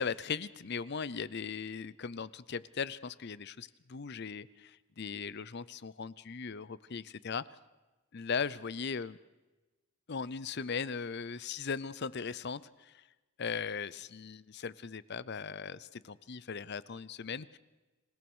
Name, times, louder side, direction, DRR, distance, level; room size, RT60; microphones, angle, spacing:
voice 1, 0.0-7.4 8.1-9.2 10.1-13.0 13.4-17.6, left 5 dB, 50° left, 18 dB, 0.6 m, -38 dB
27.0 x 17.5 x 6.2 m, 1.1 s
head